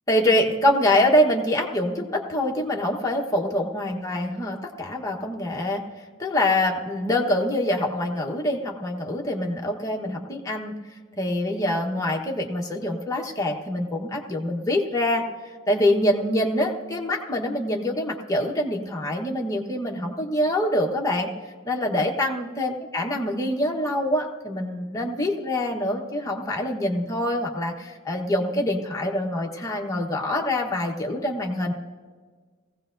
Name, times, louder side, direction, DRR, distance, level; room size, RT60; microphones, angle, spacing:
voice 1, 0.1-5.8 6.2-10.7 11.2-15.2 15.7-21.3 21.6-31.7, left 1 dB, 15° left, -1 dB, 1.1 m, -25 dB
18.5 x 16.0 x 2.6 m, 1.5 s
head